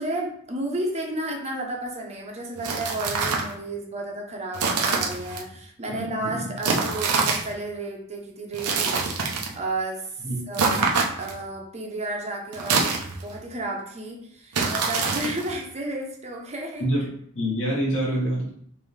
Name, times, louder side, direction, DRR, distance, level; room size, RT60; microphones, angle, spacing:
voice 1, 0.0-8.9 9.6-10.1 10.5-12.9 13.2-16.9 17.4-17.5, right 1 dB, 30° right, 0 dB, 0.8 m, -32 dB
sound 1, 2.6-3.5 4.5-5.4 6.6-7.5 8.5-9.6 10.5-11.4 12.5-13.4 14.5-15.5, right 4 dB, 85° right, 0.8 m, -25 dB
voice 2, 5.9-6.5 10.2-10.8 16.8-17.1 17.4-18.5, right 1 dB, 60° left, -5 dB, 2.0 m, -27 dB
5.4 x 2.8 x 3.3 m, 0.63 s
head